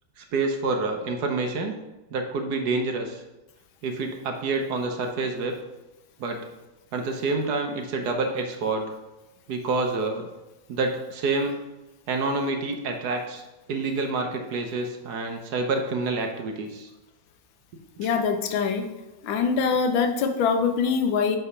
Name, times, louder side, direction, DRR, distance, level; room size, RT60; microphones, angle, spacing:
voice 1, 0.2-1.7 2.1-3.2 3.8-5.6 6.2-6.4 6.9-8.8 9.5-10.3 10.7-11.5 12.1-13.4 13.7-16.9 18.0-18.1, right 3 dB, 65° right, 4 dB, 1.2 m, -27 dB
voice 2, 18.0-18.9 19.2-21.4, left 5 dB, 90° left, 6 dB, 1.5 m, -23 dB
7.5 x 3.5 x 5.5 m, 1.0 s
omnidirectional pair, 2.1 m